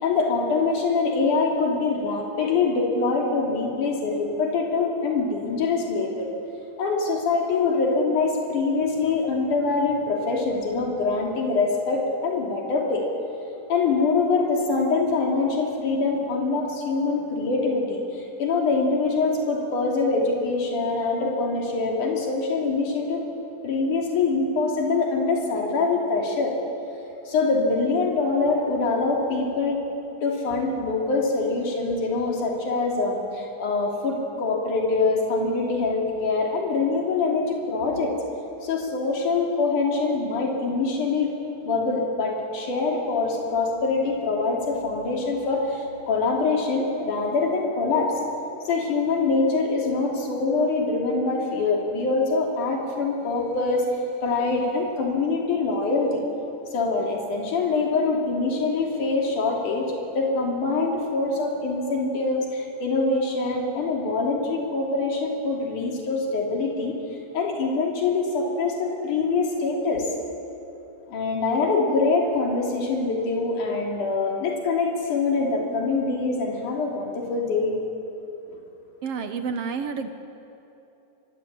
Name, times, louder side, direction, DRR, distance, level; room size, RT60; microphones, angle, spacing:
voice 1, 0.0-6.3 6.8-13.0 13.7-23.2 23.6-26.5 27.3-29.8 30.2-38.1 38.6-41.3 41.6-48.1 48.7-53.9 54.2-56.2 56.7-67.0 67.3-70.1 71.1-77.8 78.5-78.6, left 3 dB, 75° left, -1 dB, 4.6 m, -24 dB
voice 2, 79.0-80.1, right 5 dB, 60° right, 8 dB, 1.8 m, -29 dB
26.5 x 22.5 x 8.5 m, 2.9 s
omnidirectional pair, 3.6 m